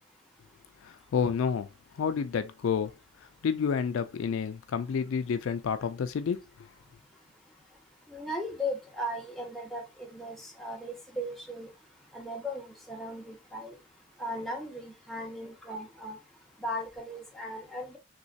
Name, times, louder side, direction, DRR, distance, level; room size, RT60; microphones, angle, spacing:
voice 1, 0.8-1.7 1.9-2.9 3.4-6.4, left 6 dB, 70° left, 0.4 m, -29 dB
voice 2, 8.1-11.7 12.1-13.8 14.2-16.2 16.6-18.0, equal, ahead, 0.8 m, -37 dB
3.1 x 3.0 x 2.7 m
head